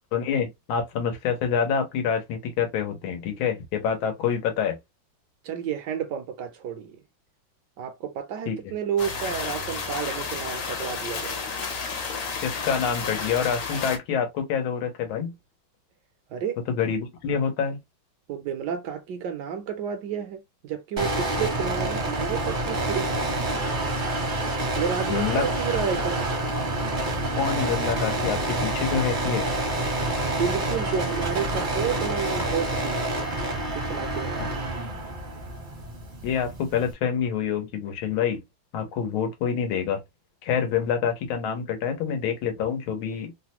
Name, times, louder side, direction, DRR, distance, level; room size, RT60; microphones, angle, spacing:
voice 1, 0.1-4.8 8.5-8.6 12.4-15.3 16.7-17.8 25.1-25.5 27.4-29.5 36.2-38.4 38.7-40.0 40.4-43.3, left 7 dB, 90° left, 1.7 m, -27 dB
voice 2, 5.4-7.0 7.8-11.5 16.3-16.6 18.3-23.3 24.8-26.3 30.3-33.3 33.7-34.6, right 7 dB, 70° right, 1.0 m, -31 dB
sound 1, 9.0-14.0, left 5 dB, 65° left, 1.4 m, -32 dB
sound 2, 21.0-36.9, right 2 dB, 45° right, 0.6 m, -28 dB
3.6 x 2.1 x 2.8 m
omnidirectional pair, 2.2 m